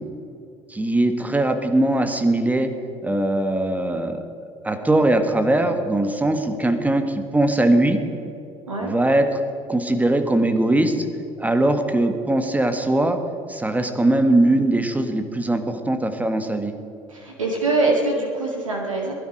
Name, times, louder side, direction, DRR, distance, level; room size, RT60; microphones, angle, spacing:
voice 1, 0.7-2.7 3.0-4.3 4.6-8.0 8.8-9.4 9.7-11.0 11.4-13.2 13.5-16.7, right 1 dB, 10° right, 7 dB, 1.7 m, -20 dB
voice 2, 17.1-19.1, right 2 dB, 80° right, -1 dB, 2.0 m, -23 dB
21.0 x 11.5 x 5.0 m, 2.8 s
figure-of-eight pair, 65°, 17 cm